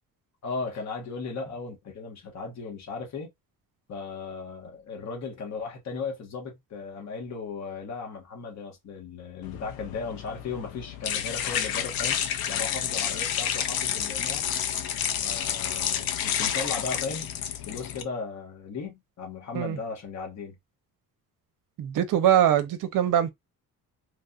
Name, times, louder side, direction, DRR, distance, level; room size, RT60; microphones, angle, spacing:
voice 1, 0.4-3.3 3.9-12.2 12.5-14.5 15.2-17.4 17.7-20.5, left 4 dB, 50° left, 1.2 m, -36 dB
sound 1, 9.4-18.0, left 9 dB, 75° left, 0.6 m, -30 dB
voice 2, 21.8-23.3, right 10 dB, 60° right, 0.7 m, -22 dB
3.2 x 2.6 x 2.3 m
cardioid pair, 145°, 36 cm